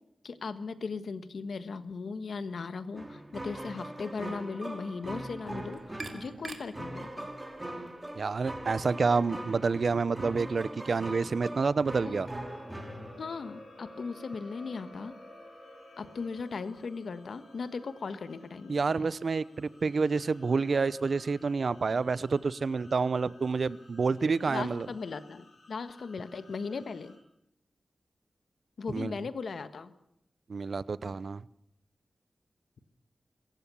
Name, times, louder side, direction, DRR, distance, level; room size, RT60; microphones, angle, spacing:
voice 1, 0.2-7.3 12.0-12.2 13.2-15.1 16.0-19.0 24.5-27.1 28.8-29.9, left 4 dB, 80° left, 1.4 m, -38 dB
sound 1, 2.9-13.6, right 1 dB, 20° right, 3.3 m, -41 dB
sound 2, 5.4-10.5, right 3 dB, 45° right, 3.1 m, -49 dB
voice 2, 8.2-12.3 18.7-24.9 28.9-29.1 30.5-31.4, right 4 dB, 65° right, 0.7 m, -28 dB
sound 3, 12.1-27.2, left 1 dB, 60° left, 7.2 m, -54 dB
26.0 x 15.0 x 7.1 m
wide cardioid pair, 80°, 0 cm